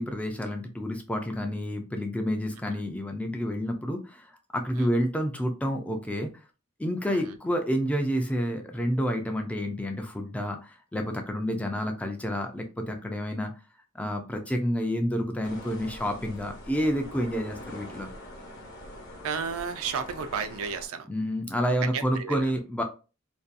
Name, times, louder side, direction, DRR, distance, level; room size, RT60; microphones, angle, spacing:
voice 1, 0.0-6.3 6.8-13.5 13.9-18.1 21.1-22.8, equal, 5° left, 0.3 m, -29 dB
sound 1, 15.4-20.9, left 1 dB, 50° left, 0.8 m, -44 dB
voice 2, 19.2-21.1 21.8-22.4, right 6 dB, 70° right, 0.4 m, -33 dB
2.6 x 2.3 x 2.4 m
head